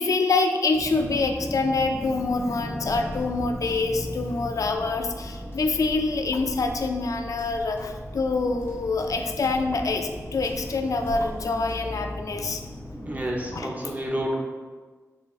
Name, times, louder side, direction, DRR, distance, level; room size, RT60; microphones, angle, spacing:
voice 1, 0.0-12.6 13.5-13.7, left 3 dB, 75° left, 5 dB, 0.3 m, -26 dB
sound 1, 0.7-13.6, left 1 dB, 45° left, 1.0 m, -37 dB
voice 2, 12.9-14.4, equal, 25° right, -1 dB, 0.7 m, -29 dB
4.9 x 3.2 x 2.4 m, 1.4 s
wide cardioid pair, 85°, 6 cm